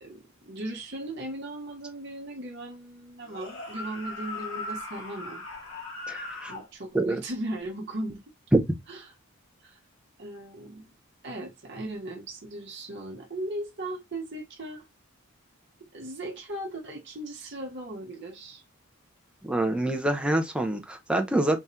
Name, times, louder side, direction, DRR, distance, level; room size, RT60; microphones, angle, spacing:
voice 1, 0.0-5.4 6.5-8.2 8.9-9.1 9.6-9.8 10.2-10.9 11.2-14.8 15.9-18.6, right 1 dB, 55° right, 0.9 m, -37 dB
sound 1, 3.3-6.7, left 2 dB, 70° left, 1.8 m, -38 dB
voice 2, 6.1-6.5 6.9-7.2 8.5-8.6 19.4-21.6, right 1 dB, 5° right, 0.6 m, -25 dB
3.5 x 2.7 x 4.3 m
head